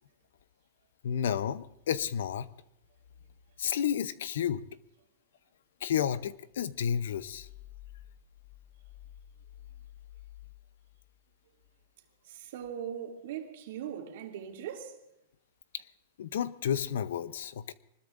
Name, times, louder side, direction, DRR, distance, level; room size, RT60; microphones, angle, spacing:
voice 1, 1.0-2.5 3.6-4.6 5.8-7.5 16.2-17.7, left 8 dB, 75° left, 0.7 m, -31 dB
voice 2, 12.2-15.0, right 9 dB, 65° right, 2.5 m, -40 dB
24.5 x 20.5 x 2.6 m
supercardioid pair, 145°, 0 cm